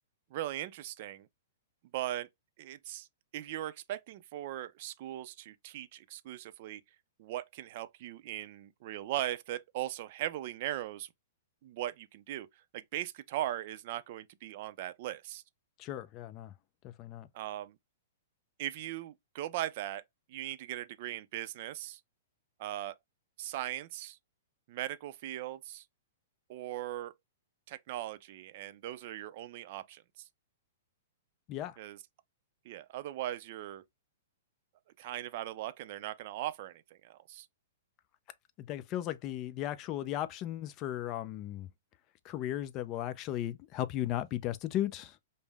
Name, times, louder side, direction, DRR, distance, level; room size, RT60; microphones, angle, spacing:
voice 1, 0.3-1.3 1.9-2.3 2.6-3.1 3.3-6.8 7.2-11.1 11.6-12.5 12.7-15.4 17.3-17.8 18.6-20.0 20.3-22.0 22.6-23.0 23.4-24.2 24.7-25.8 26.5-27.1 27.7-30.3 31.8-32.0 32.7-33.8 35.0-37.5, right 13 dB, 50° right, 0.4 m, -39 dB
voice 2, 15.8-16.5 16.8-17.3 31.5-31.8 38.6-41.7 42.2-45.2, left 12 dB, 30° left, 0.5 m, -36 dB
5.3 x 2.0 x 3.4 m
hypercardioid pair, 145°, 0 cm